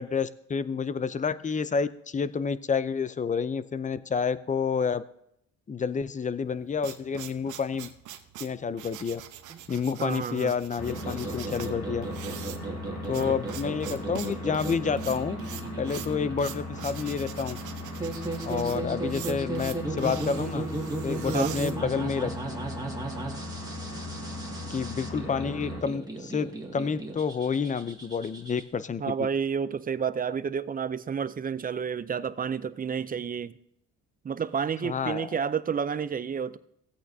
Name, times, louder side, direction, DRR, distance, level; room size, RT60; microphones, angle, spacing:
voice 1, 0.0-5.0 5.7-7.9 8.4-9.2 9.7-12.1 13.1-15.4 15.8-17.6 18.4-20.6 21.0-22.7 24.7-29.1 34.8-35.4, left 6 dB, 25° left, 0.5 m, -29 dB
sound 1, 6.4-22.4, right 11 dB, 80° right, 0.9 m, -43 dB
voice 2, 10.0-10.5 13.1-13.3 21.3-21.5 29.0-33.5 34.2-36.6, right 6 dB, 30° right, 0.5 m, -30 dB
sound 2, 10.8-25.8, left 2 dB, 60° left, 1.7 m, -38 dB
sound 3, 10.9-28.6, right 2 dB, 15° right, 2.0 m, -36 dB
15.5 x 8.5 x 2.7 m
cardioid pair, 90°, 30 cm